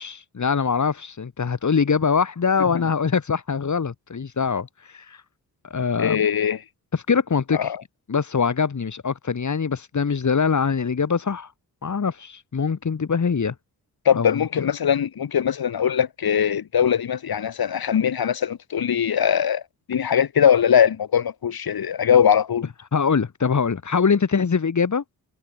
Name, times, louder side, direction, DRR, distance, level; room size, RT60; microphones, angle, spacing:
voice 1, 0.0-5.2 5.6-6.2 6.9-7.7 8.1-11.5 11.8-13.5 14.1-14.7 22.9-25.0, left 5 dB, 50° left, 6.1 m, -23 dB
voice 2, 6.0-6.6 7.5-7.7 14.1-19.6 19.9-22.7, left 8 dB, 75° left, 7.0 m, -21 dB
cardioid pair, 75°, 36 cm